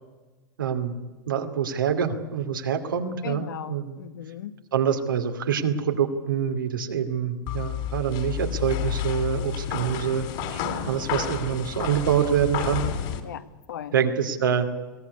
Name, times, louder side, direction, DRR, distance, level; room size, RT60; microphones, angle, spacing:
voice 1, 0.6-1.0 1.3-4.0 4.7-10.6 10.9-12.9 13.9-14.7, right 8 dB, 90° right, 5 dB, 2.5 m, -26 dB
voice 2, 3.2-4.6 13.2-13.9, left 10 dB, 80° left, 11 dB, 1.3 m, -37 dB
sound 1, 7.5-13.2, left 9 dB, 60° left, 3.6 m, -30 dB
22.5 x 16.5 x 9.6 m, 1.2 s
hypercardioid pair, 110°, 11 cm